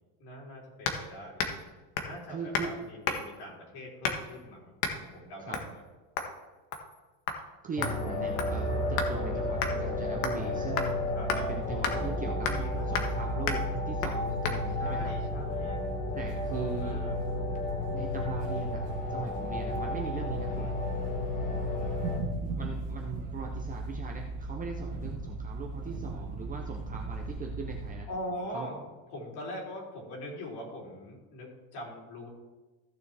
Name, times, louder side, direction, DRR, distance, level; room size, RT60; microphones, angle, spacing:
voice 1, 0.2-1.6 2.0-5.8 11.2-11.3 11.7-13.1 14.8-15.9 16.2-17.3 20.5-20.8 28.1-32.3, left 1 dB, 55° left, -2 dB, 3.6 m, -42 dB
sound 1, 0.8-1.0 1.4-1.6 2.0-2.2 2.5-2.7 3.0-3.4 4.0-4.3 4.8-5.0 5.5-5.7 6.2-6.3 6.7-7.0 7.3-7.4 7.8-9.1 9.6-9.7 10.2-10.5 10.8-10.9 11.3-11.4 11.8-12.0 12.4-12.7 12.9-13.2 13.5-13.6 14.0-14.2 14.4-14.6, left 6 dB, 75° left, 1.5 m, -32 dB
voice 2, 2.3-2.7 5.4-5.6 7.6-11.0 11.3-12.5 12.9-15.2 16.1-17.0 17.9-20.7 22.6-28.1 28.5-28.7, right 5 dB, 20° right, 1 dB, 0.5 m, -40 dB
sound 2, 7.8-22.2, left 2 dB, 15° left, 1.0 m, -33 dB
sound 3, 8.3-28.0, right 2 dB, 60° right, 1.4 m, -38 dB
15.0 x 6.8 x 3.3 m, 1.2 s
cardioid pair, 165°, 47 cm